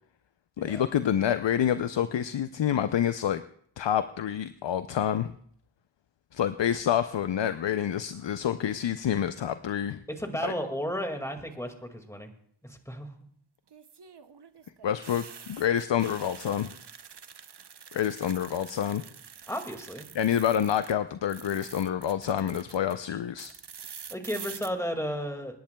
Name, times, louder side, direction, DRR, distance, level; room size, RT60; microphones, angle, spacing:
voice 1, 0.6-3.4 3.8-5.3 6.3-10.0 10.4-10.5 14.8-16.7 17.9-19.0 20.1-23.5, left 9 dB, 70° left, 11 dB, 0.6 m, -27 dB
voice 2, 10.1-12.3 12.6-13.1 19.5-20.1 24.1-25.6, equal, 5° left, 5 dB, 2.0 m, -33 dB
sound 1, 11.3-11.8 13.7-20.9 21.2-22.9 23.4-24.7, right 7 dB, 60° right, 0.7 m, -46 dB
28.0 x 10.5 x 2.2 m, 0.62 s
wide cardioid pair, 45°, 45 cm